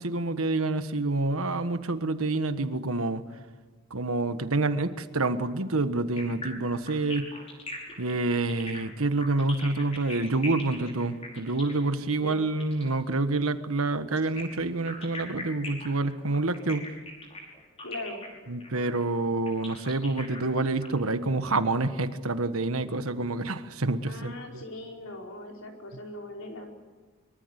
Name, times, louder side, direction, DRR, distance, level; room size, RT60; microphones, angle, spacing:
voice 1, 0.0-3.2 3.9-7.3 8.0-16.9 18.5-24.6, right 2 dB, 75° right, 10 dB, 1.4 m, -27 dB
sound 1, 6.2-12.9 14.2-20.9, left 2 dB, 25° left, 5.4 m, -41 dB
voice 2, 12.1-12.5 17.8-18.2 24.0-26.8, left 1 dB, 70° left, 1 dB, 4.9 m, -40 dB
24.0 x 24.0 x 8.3 m, 1.3 s
head